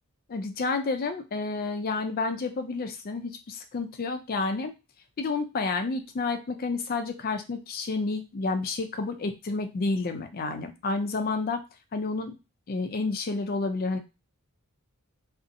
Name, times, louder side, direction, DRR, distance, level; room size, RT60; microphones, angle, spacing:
voice 1, 0.3-4.7 5.2-11.6 11.9-12.4 12.7-14.0, left 3 dB, 45° left, 6 dB, 0.4 m, -30 dB
2.7 x 2.0 x 2.5 m, 0.27 s
head